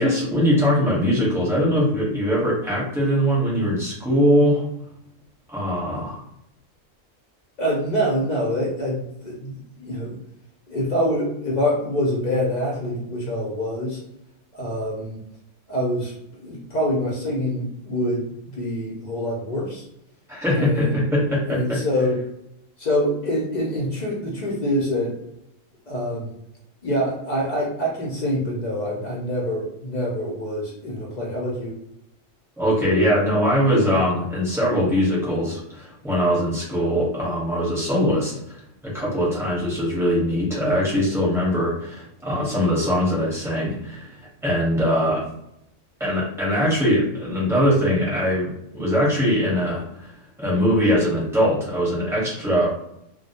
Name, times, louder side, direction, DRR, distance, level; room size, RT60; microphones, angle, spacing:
voice 1, 0.0-4.6 5.5-6.2 20.3-21.8 32.6-45.2 46.0-50.1 50.4-52.7, equal, 5° right, -6 dB, 0.7 m, -21 dB
voice 2, 7.6-10.2 10.7-14.0 14.5-15.2 15.7-19.8 20.6-21.0 21.5-22.2 22.8-25.1 25.9-26.3 26.8-31.7, equal, 60° left, -3 dB, 0.4 m, -25 dB
2.1 x 2.1 x 2.7 m, 0.79 s
omnidirectional pair, 1.4 m